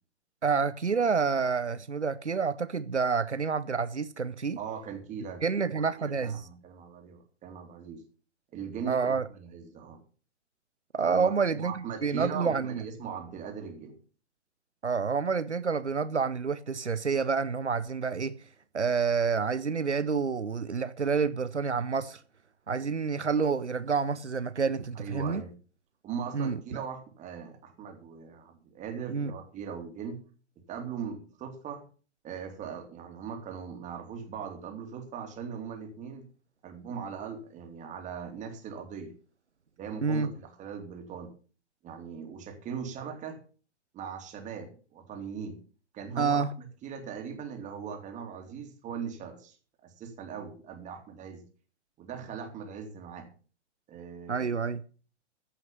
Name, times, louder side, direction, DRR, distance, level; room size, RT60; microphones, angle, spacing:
voice 1, 0.4-4.6 5.4-6.5 8.9-9.3 10.9-12.8 14.8-18.4 18.7-22.2 22.7-25.4 26.3-26.8 29.1-29.3 40.0-40.3 46.2-46.5 54.3-54.8, right 5 dB, 85° right, 0.7 m, -28 dB
voice 2, 4.6-8.0 8.5-10.0 11.0-14.0 24.9-25.5 26.0-30.2 30.7-31.8 32.2-36.3 36.6-39.1 39.8-41.3 41.8-43.4 43.9-45.6 45.9-49.6 49.8-51.4 52.0-53.3 53.9-54.5, right 7 dB, 20° right, 2.8 m, -40 dB
14.5 x 5.9 x 7.2 m
figure-of-eight pair, 110°, 33 cm